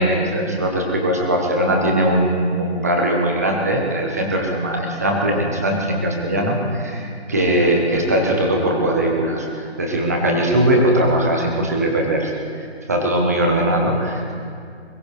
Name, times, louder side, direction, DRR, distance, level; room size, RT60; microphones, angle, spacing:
voice 1, 0.0-12.3 12.9-14.3, right 1 dB, 15° right, 0 dB, 0.9 m, -20 dB
22.0 x 17.0 x 3.2 m, 2.3 s
hypercardioid pair, 175°, 33 cm